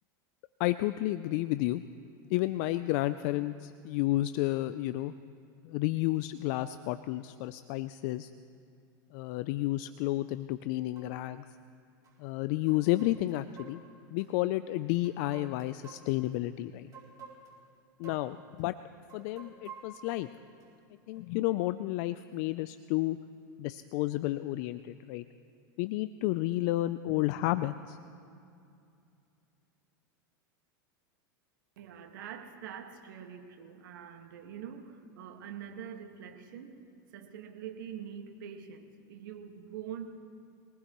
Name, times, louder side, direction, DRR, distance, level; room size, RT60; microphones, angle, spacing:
voice 1, 0.6-1.8 2.3-5.1 5.6-8.3 9.1-11.5 12.2-13.8 14.1-16.9 18.0-18.8 19.1-20.3 21.1-23.2 23.6-25.2 25.8-28.0, left 16 dB, 60° left, 13 dB, 0.4 m, -31 dB
sound 1, 10.2-10.3 11.0-11.1 12.0-12.1 12.7-14.3 15.0-16.4 16.9-17.6 18.0-18.3 18.6-18.7 19.1-20.7 21.1-21.3, right 6 dB, 35° right, 4.2 m, -51 dB
voice 2, 31.8-36.8 37.1-40.1, right 8 dB, 75° right, 5 dB, 1.7 m, -44 dB
24.0 x 19.0 x 3.1 m, 2.5 s
hypercardioid pair, 110°, 11 cm